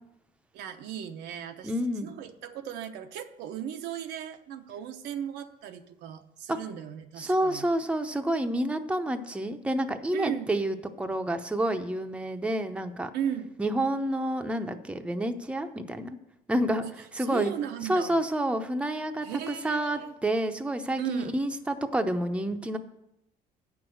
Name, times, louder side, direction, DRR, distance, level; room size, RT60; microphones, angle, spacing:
voice 1, 0.5-1.7 2.0-7.7 10.1-10.5 13.1-13.5 16.8-18.2 19.2-20.1 21.0-21.4, right 9 dB, 85° right, 6 dB, 0.9 m, -36 dB
voice 2, 1.6-2.1 6.5-6.6 7.2-13.1 13.6-16.2 16.5-16.8 17.1-17.5 17.9-22.8, right 1 dB, 5° right, 6 dB, 0.7 m, -29 dB
8.5 x 6.2 x 7.8 m, 0.84 s
cardioid pair, 110°, 17 cm